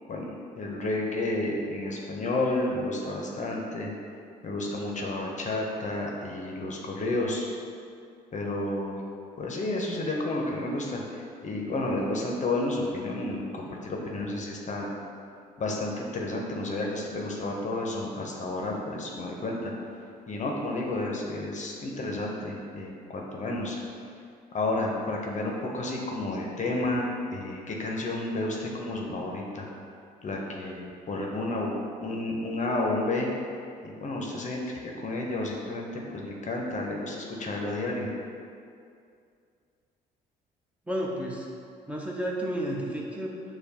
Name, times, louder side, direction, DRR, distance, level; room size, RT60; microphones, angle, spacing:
voice 1, 0.0-3.9 4.4-7.5 8.3-9.0 9.4-14.9 15.6-19.7 20.3-23.8 24.5-29.7 30.2-31.7 32.0-33.3 33.8-38.1, left 2 dB, 40° left, -1 dB, 0.7 m, -31 dB
voice 2, 40.9-41.5 41.9-43.3, right 1 dB, 5° right, -3 dB, 0.7 m, -31 dB
6.4 x 2.3 x 2.8 m, 2.4 s
hypercardioid pair, 55°, 20 cm